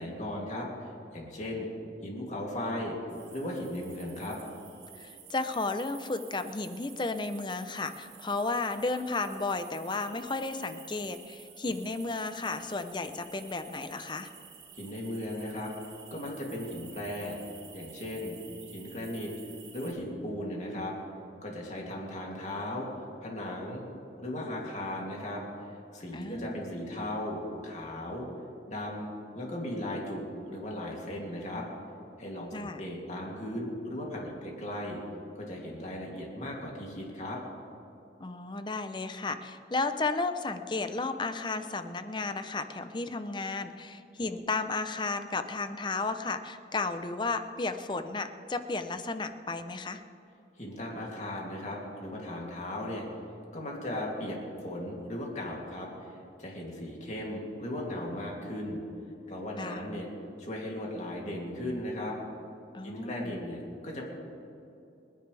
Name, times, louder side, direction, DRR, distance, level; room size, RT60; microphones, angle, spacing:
voice 1, 0.0-1.7 2.0-3.0 3.3-4.4 14.7-15.7 16.1-17.4 17.7-18.4 18.7-19.3 19.7-20.9 21.4-22.9 23.2-23.8 24.2-25.4 25.9-28.2 28.7-29.1 29.3-31.7 32.2-35.0 35.3-37.4 50.6-53.0 53.5-58.8 59.3-60.1 60.4-62.2 62.8-64.0, left 1 dB, 40° left, -2 dB, 2.8 m, -37 dB
sound 1, 3.1-19.9, right 8 dB, 70° right, 2.9 m, -51 dB
voice 2, 4.9-14.3 26.1-26.8 32.5-32.9 38.2-50.0 59.6-59.9 62.7-63.4, left 3 dB, 25° left, 9 dB, 0.6 m, -33 dB
29.5 x 10.0 x 3.4 m, 2.8 s
head